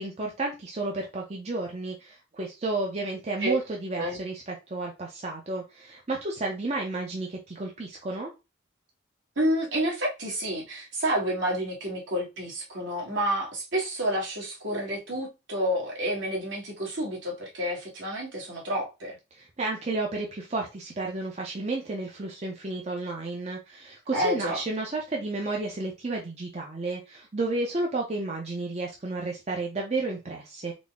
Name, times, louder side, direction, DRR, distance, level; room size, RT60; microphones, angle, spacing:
voice 1, 0.0-8.3 19.3-30.7, right 2 dB, 35° right, 0.6 m, -32 dB
voice 2, 9.4-19.2 24.1-24.6, equal, 70° right, 1.5 m, -29 dB
4.0 x 2.0 x 3.5 m
head